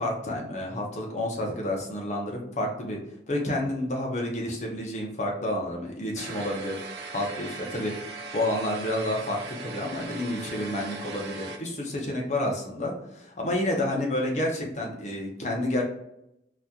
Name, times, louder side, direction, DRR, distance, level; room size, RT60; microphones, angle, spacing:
voice 1, 0.0-3.0 3.3-7.9 8.3-15.8, left 1 dB, 40° left, -1 dB, 0.8 m, -30 dB
sound 1, 6.2-11.6, right 3 dB, 75° right, 0.5 m, -39 dB
4.1 x 2.7 x 2.3 m, 0.81 s
head